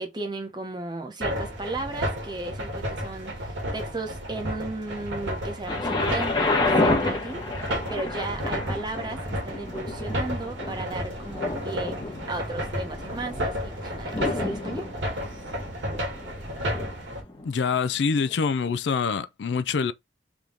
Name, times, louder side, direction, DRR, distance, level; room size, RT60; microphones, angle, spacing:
voice 1, 0.0-14.9, right 2 dB, 25° right, 0.8 m, -35 dB
sound 1, 1.2-17.2, equal, 90° right, 1.5 m, -32 dB
Thunder, 5.7-17.5 18.3-18.4, left 2 dB, 25° left, 1.0 m, -30 dB
voice 2, 17.4-19.9, left 5 dB, 75° left, 0.4 m, -25 dB
3.5 x 3.0 x 3.7 m
head